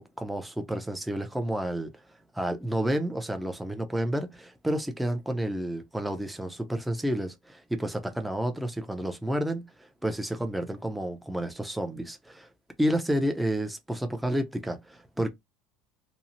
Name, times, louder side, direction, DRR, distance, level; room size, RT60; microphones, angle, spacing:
voice 1, 0.0-1.9 2.3-12.5 12.8-15.3, right 1 dB, 5° right, 0.5 m, -30 dB
2.6 x 2.0 x 2.8 m
cardioid pair, 130°, 0 cm